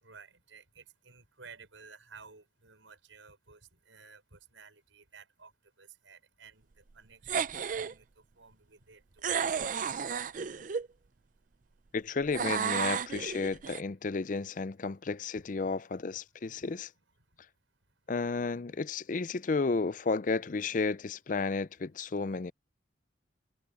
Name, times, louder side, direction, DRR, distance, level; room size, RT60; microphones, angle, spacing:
voice 1, 0.0-5.5 5.8-10.2 15.3-15.8 16.6-16.7, right 5 dB, 85° right, 6.2 m, -55 dB
sound 1, 7.2-7.9 9.2-10.9 12.3-13.8, right 6 dB, 45° right, 0.4 m, -32 dB
voice 2, 11.9-16.9 18.1-22.5, left 4 dB, 40° left, 0.5 m, -32 dB
head